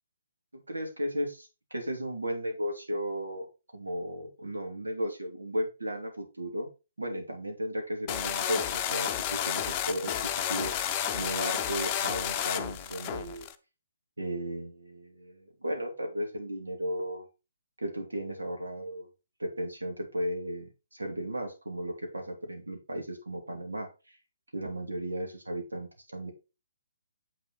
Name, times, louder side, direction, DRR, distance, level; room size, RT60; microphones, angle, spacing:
voice 1, 0.5-1.4 1.7-3.5 3.7-6.7 7.0-10.1 10.5-13.5 14.2-17.3 17.8-19.1 19.4-24.2 24.5-26.3, equal, 80° right, 3 dB, 2.8 m, -35 dB
sound 1, 8.1-13.5, left 10 dB, 25° left, 0.8 m, -31 dB
7.8 x 6.0 x 4.1 m, 0.29 s
figure-of-eight pair, 135°, 0 cm